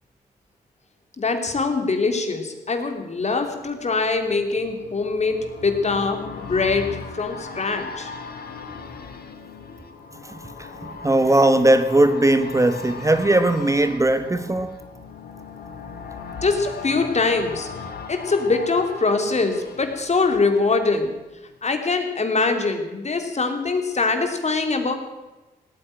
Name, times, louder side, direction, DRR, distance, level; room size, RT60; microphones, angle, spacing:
voice 1, 1.2-8.1 16.4-17.7 18.1-21.1 21.6-24.9, left 3 dB, 40° left, 3.0 m, -23 dB
sound 1, 3.3-21.1 21.4-21.5, left 5 dB, 65° left, 2.1 m, -38 dB
voice 2, 10.2-14.8, right 1 dB, 20° right, 1.1 m, -19 dB
17.5 x 9.1 x 9.1 m
supercardioid pair, 50°, 17 cm